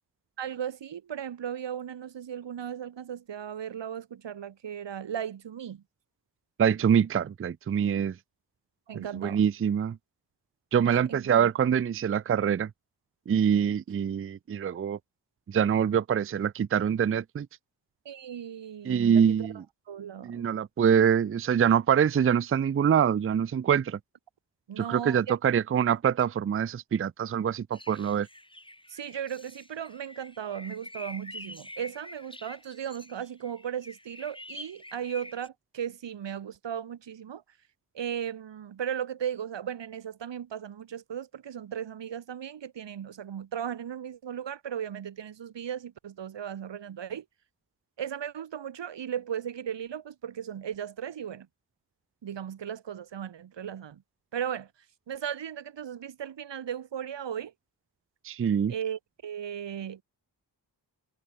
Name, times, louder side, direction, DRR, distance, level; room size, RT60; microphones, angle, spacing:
voice 1, 0.4-5.8 8.9-9.4 10.8-11.5 18.1-19.5 19.9-20.5 24.7-25.3 28.9-37.4 37.9-47.3 48.0-51.5 52.2-54.0 54.3-54.7 55.1-57.5 58.7-60.0, right 9 dB, 90° right, 1.8 m, -36 dB
voice 2, 6.6-8.2 8.9-10.0 10.7-12.7 13.3-15.0 15.5-17.5 18.8-19.6 20.2-24.0 24.8-28.3 58.2-58.7, right 8 dB, 30° right, 0.5 m, -25 dB
sound 1, 27.7-35.5, left 1 dB, 10° left, 4.2 m, -46 dB
cardioid pair, 60°, 42 cm